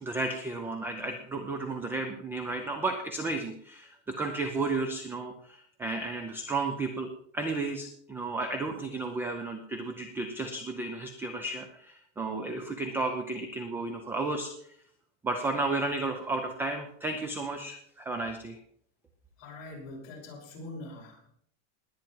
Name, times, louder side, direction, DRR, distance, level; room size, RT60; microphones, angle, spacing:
voice 1, 0.0-14.8 15.2-18.6, right 3 dB, 5° right, 6 dB, 0.5 m, -33 dB
voice 2, 19.4-21.3, left 2 dB, 35° left, -3 dB, 6.0 m, -43 dB
20.0 x 9.2 x 4.6 m, 0.67 s
supercardioid pair, 170°, 38 cm